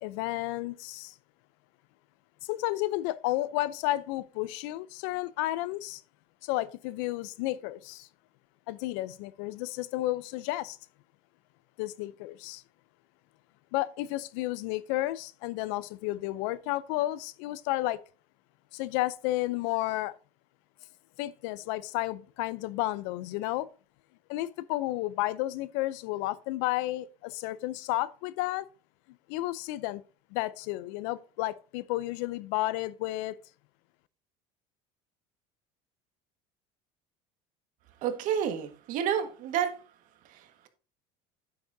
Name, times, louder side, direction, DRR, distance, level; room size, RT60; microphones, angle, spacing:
voice 1, 0.0-1.1 2.4-6.0 6.4-8.1 8.7-10.8 11.8-12.6 13.7-18.0 18.7-20.1 21.2-23.7 24.3-28.7 29.3-30.0 30.3-33.4, left 17 dB, 80° left, 0.6 m, -32 dB
voice 2, 38.0-39.7, right 9 dB, 60° right, 1.7 m, -29 dB
9.6 x 7.9 x 2.7 m
supercardioid pair, 120°, 15 cm